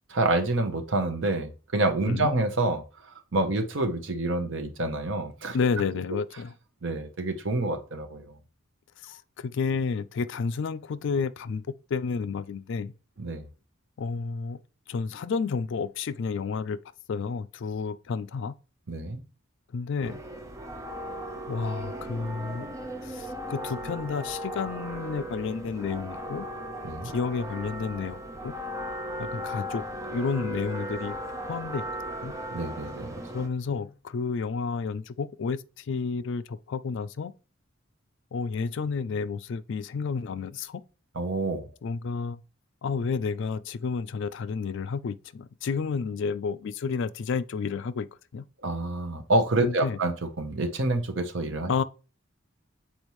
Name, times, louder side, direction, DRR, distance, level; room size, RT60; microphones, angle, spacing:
voice 1, 0.1-2.8 3.3-5.6 6.8-8.3 13.2-13.4 18.9-19.2 26.8-27.1 32.5-33.1 41.1-41.7 48.6-51.7, right 2 dB, 65° right, 0.9 m, -27 dB
voice 2, 5.5-6.5 9.0-12.9 14.0-14.6 14.9-16.8 17.1-18.5 19.7-20.2 21.5-22.7 23.0-26.5 27.0-28.2 28.4-28.5 29.2-31.2 31.5-31.8 32.2-32.3 33.3-37.3 38.3-40.8 41.8-42.4 42.8-48.1 48.3-48.4 49.6-50.0 51.7-51.8, left 5 dB, 60° left, 0.4 m, -31 dB
sound 1, 20.0-33.5, equal, 15° right, 0.7 m, -37 dB
7.0 x 4.4 x 3.1 m
head